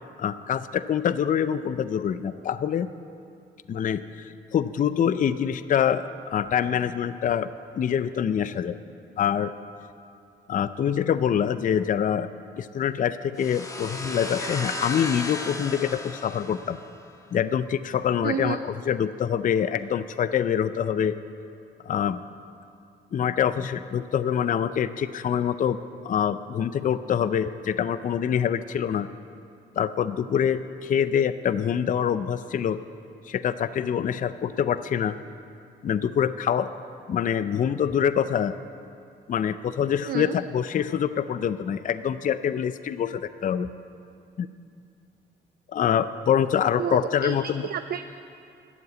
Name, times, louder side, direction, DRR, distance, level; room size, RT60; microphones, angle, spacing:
voice 1, 0.2-2.9 3.7-7.5 7.7-8.8 9.2-9.5 10.5-12.3 12.6-16.8 17.3-21.2 21.8-22.2 23.1-25.8 26.0-29.1 29.8-32.8 33.3-35.2 35.8-36.7 37.1-38.5 39.3-43.7 44.4-44.5 45.7-47.7, left 8 dB, 40° left, 13 dB, 0.5 m, -25 dB
sound 1, 13.4-17.1, left 2 dB, 15° left, 1.3 m, -35 dB
voice 2, 18.2-18.6 40.0-40.3 46.8-47.4 47.6-48.0, right 9 dB, 50° right, 9 dB, 0.5 m, -30 dB
12.5 x 7.9 x 8.2 m, 2.6 s
cardioid pair, 90°, 20 cm